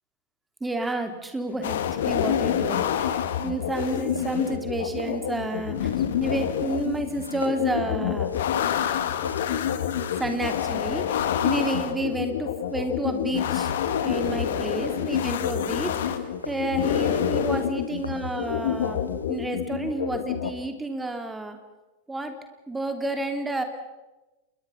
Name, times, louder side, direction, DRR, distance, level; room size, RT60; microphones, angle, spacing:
voice 1, 0.6-1.8 2.0-8.3 10.2-13.7 14.0-21.6 22.1-22.3 22.7-23.6, right 2 dB, 10° right, 6 dB, 2.9 m, -30 dB
sound 1, 1.5-19.4, left 3 dB, 80° left, 1.9 m, -45 dB
sound 2, 1.6-20.5, left 9 dB, 60° left, 1.7 m, -27 dB
28.0 x 22.0 x 5.7 m, 1.1 s
figure-of-eight pair, 90°, 0 cm